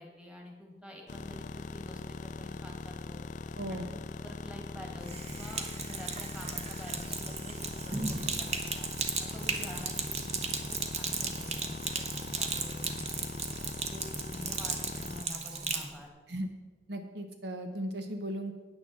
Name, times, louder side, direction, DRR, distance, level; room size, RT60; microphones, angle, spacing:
voice 1, 0.0-3.2 3.7-8.9 9.2-13.3 13.9-16.1, left 1 dB, 5° right, 1 dB, 1.8 m, -48 dB
sound 1, 1.1-15.2, left 3 dB, 45° left, 0.4 m, -41 dB
voice 2, 3.6-3.9 16.3-16.5 16.9-18.6, right 1 dB, 65° right, 6 dB, 1.0 m, -36 dB
Sink (filling or washing), 5.0-15.9, right 5 dB, 40° right, 1.0 m, -36 dB
9.0 x 6.8 x 7.3 m, 1.3 s
head